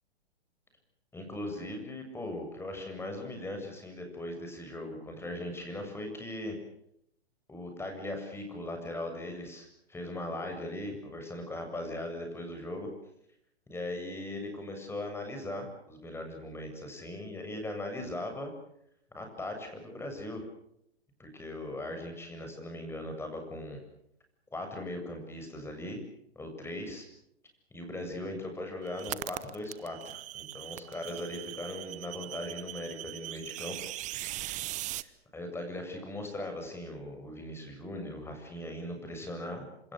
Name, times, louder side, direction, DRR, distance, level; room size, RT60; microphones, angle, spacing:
voice 1, 1.1-6.6 7.5-12.9 13.7-18.5 19.1-20.4 21.2-23.8 24.5-26.0 26.3-27.1 27.7-33.8 35.0-39.9, left 1 dB, 5° left, 4 dB, 7.7 m, -39 dB
sound 1, 28.8-35.0, right 16 dB, 25° right, 1.0 m, -40 dB
27.5 x 27.0 x 6.7 m, 0.73 s
figure-of-eight pair, 120°, 32 cm